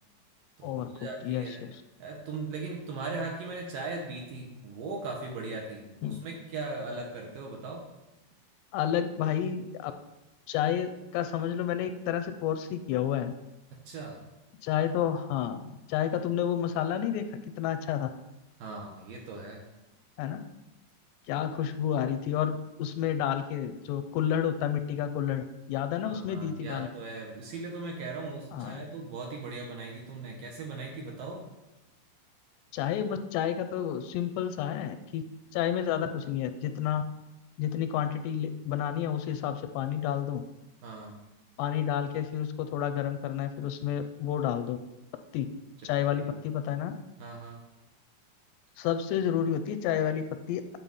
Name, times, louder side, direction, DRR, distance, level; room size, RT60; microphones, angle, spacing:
voice 1, 0.6-1.6 2.0-7.8 13.7-14.2 18.6-19.7 26.0-31.5 40.8-41.2 46.0-46.1 47.2-47.6, right 3 dB, 65° right, 0 dB, 2.4 m, -39 dB
voice 2, 1.2-1.8 6.0-6.2 8.7-9.9 10.5-13.3 14.6-18.1 20.2-20.4 21.3-26.9 28.5-28.8 32.7-35.2 35.5-37.0 37.6-40.4 41.6-44.8 45.3-45.5 45.8-46.9 48.8-50.6, left 9 dB, 85° left, 9 dB, 2.7 m, -30 dB
8.9 x 8.6 x 5.4 m, 0.98 s
omnidirectional pair, 5.1 m